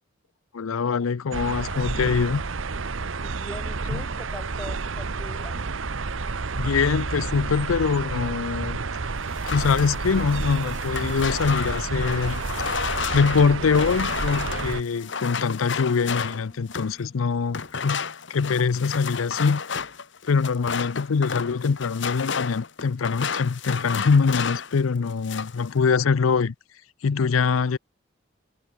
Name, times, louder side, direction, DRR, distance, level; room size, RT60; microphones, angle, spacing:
voice 1, 0.5-2.4 3.9-4.0 6.6-8.8 9.5-12.4 13.1-18.0 18.3-19.6 20.3-26.5 27.0-27.8, left 5 dB, 90° left, 0.5 m, -23 dB
sound 1, 1.3-14.8, right 4 dB, 75° right, 1.0 m, -30 dB
voice 2, 3.1-5.6, equal, 5° left, 1.4 m, -41 dB
sound 2, 9.3-17.0 17.5-24.8 25.1-25.6, left 6 dB, 65° left, 1.1 m, -31 dB
Wind instrument woodwind instrument, 12.8-18.2, left 1 dB, 25° left, 2.0 m, -53 dB
head